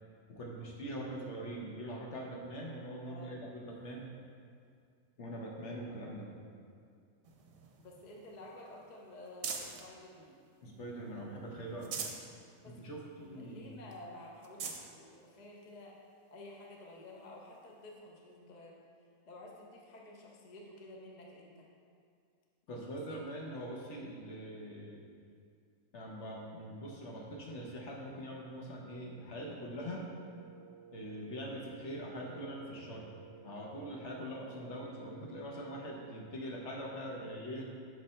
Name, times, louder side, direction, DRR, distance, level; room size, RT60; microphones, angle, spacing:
voice 1, 0.3-4.1 5.2-6.3 10.6-12.0 12.6-13.7 22.7-25.0 25.9-30.1 30.9-33.1 33.4-37.7, equal, 60° left, -1 dB, 1.1 m, -43 dB
voice 2, 3.0-3.4 7.8-10.4 12.6-12.9 13.2-16.0 16.3-18.8 19.3-21.7 22.7-23.2, left 1 dB, 40° left, -2 dB, 0.6 m, -52 dB
sound 1, 7.2-9.9 10.4-11.2 11.6-12.3 12.7-12.8 13.2-13.3 13.9-14.0 14.4-14.9 15.7-15.8 17.5-17.6, right 6 dB, 65° right, 0.9 m, -43 dB
Wind instrument woodwind instrument, 29.7-36.4, right 7 dB, 35° right, 1.1 m, -56 dB
6.3 x 3.2 x 5.4 m, 2.3 s
omnidirectional pair, 1.5 m